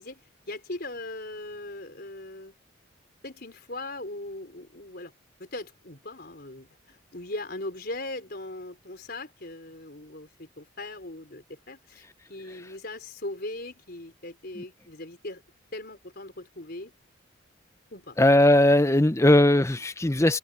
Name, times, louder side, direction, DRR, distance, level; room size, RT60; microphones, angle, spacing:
voice 1, 0.0-2.5 3.2-5.1 5.4-15.4 15.7-16.9 17.9-18.2, left 2 dB, 50° left, 4.5 m, -39 dB
voice 2, 18.2-20.4, left 1 dB, 15° left, 0.6 m, -19 dB
open air
head